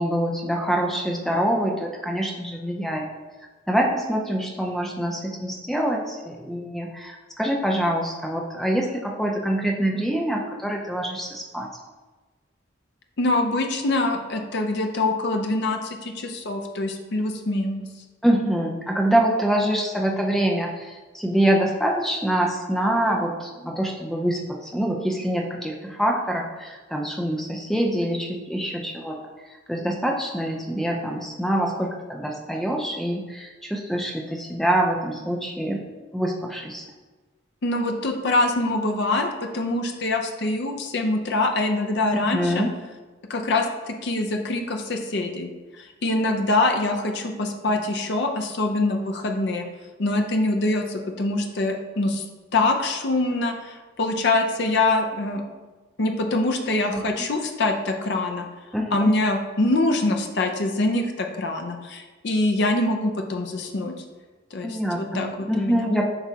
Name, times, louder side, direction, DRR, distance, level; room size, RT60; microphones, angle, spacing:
voice 1, 0.0-3.1 3.7-11.7 18.2-29.2 29.7-35.8 36.1-36.8 42.1-42.7 56.9-57.3 58.7-59.1 64.6-66.0, right 1 dB, ahead, 0 dB, 0.5 m, -25 dB
voice 2, 13.2-17.9 37.6-42.7 43.3-45.5 45.8-49.6 50.0-52.2 52.5-55.4 56.0-58.5 58.9-63.9 64.5-65.9, left 2 dB, 60° left, 3 dB, 0.6 m, -24 dB
7.9 x 4.7 x 2.8 m, 1.3 s
head